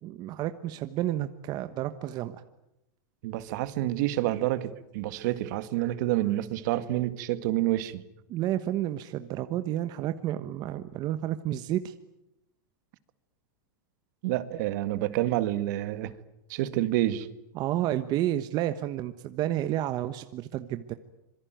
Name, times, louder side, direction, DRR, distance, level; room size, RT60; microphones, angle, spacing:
voice 1, 0.0-2.4 8.3-11.9 17.5-20.9, right 13 dB, 40° right, 10 dB, 1.2 m, -30 dB
voice 2, 3.2-8.0 14.2-16.1 16.5-17.3, right 15 dB, 60° right, 12 dB, 1.9 m, -28 dB
26.5 x 23.5 x 9.3 m, 0.87 s
supercardioid pair, 135°, 11 cm